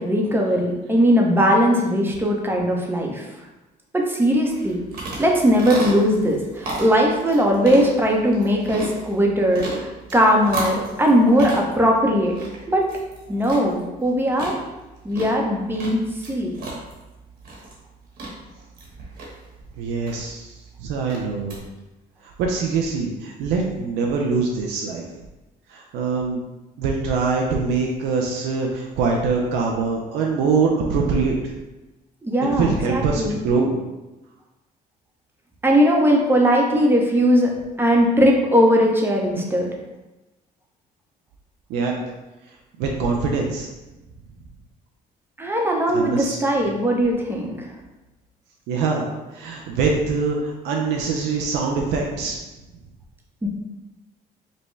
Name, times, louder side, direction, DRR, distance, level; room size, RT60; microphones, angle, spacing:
voice 1, 0.0-3.2 3.9-4.8 5.2-12.3 12.7-12.8 13.3-14.5 15.0-16.0 16.3-16.6 32.2-33.4 35.6-37.5 37.8-39.7 45.4-47.7 53.4-53.5, equal, 15° right, 0 dB, 0.7 m, -19 dB
sound 1, 4.5-21.6, right 2 dB, 65° right, 1.3 m, -35 dB
voice 2, 19.8-21.6 22.2-25.2 25.7-26.4 26.8-31.5 32.5-33.8 41.7-41.9 42.8-43.7 45.9-46.4 48.7-49.1 49.3-52.4, right 4 dB, 90° right, 0 dB, 0.5 m, -23 dB
5.2 x 2.2 x 3.2 m, 1.0 s
cardioid pair, 110°, 17 cm